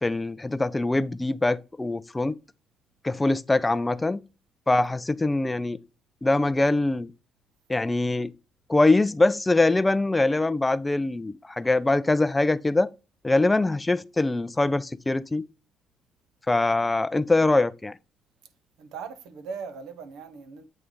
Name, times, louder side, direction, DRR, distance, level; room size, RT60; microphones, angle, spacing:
voice 1, 0.0-2.3 3.0-4.2 4.7-5.8 6.2-7.1 7.7-8.3 8.7-12.9 13.2-15.4 16.5-17.9, left 2 dB, 15° left, 0.4 m, -23 dB
voice 2, 18.8-20.7, right 5 dB, 90° right, 0.8 m, -39 dB
8.2 x 3.2 x 3.7 m
cardioid pair, 90°, 0 cm